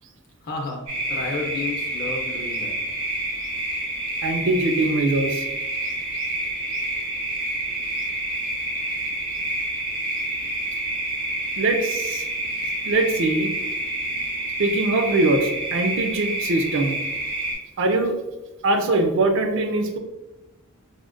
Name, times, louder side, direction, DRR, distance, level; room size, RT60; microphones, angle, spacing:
voice 1, 0.4-0.8 1.1-2.8, left 3 dB, 45° left, 0 dB, 0.5 m, -31 dB
sound 1, 0.9-17.5, right 2 dB, 85° right, 1.2 m, -28 dB
voice 2, 4.2-5.5 11.6-12.2 12.8-13.5 14.6-17.0 17.8-18.2 18.6-20.0, right 2 dB, 65° right, 6 dB, 0.4 m, -22 dB
4.9 x 2.1 x 2.5 m, 1.0 s
head